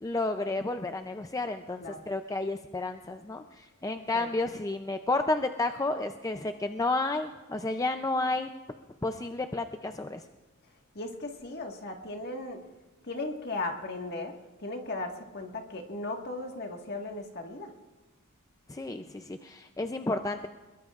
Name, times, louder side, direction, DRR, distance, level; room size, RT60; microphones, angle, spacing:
voice 1, 0.0-8.5 9.0-10.2 18.7-20.5, left 2 dB, 15° left, 7 dB, 0.4 m, -31 dB
voice 2, 10.9-12.6 13.0-14.3 14.6-17.7, left 2 dB, 50° left, 3 dB, 1.7 m, -37 dB
22.5 x 21.5 x 2.5 m, 1.2 s
head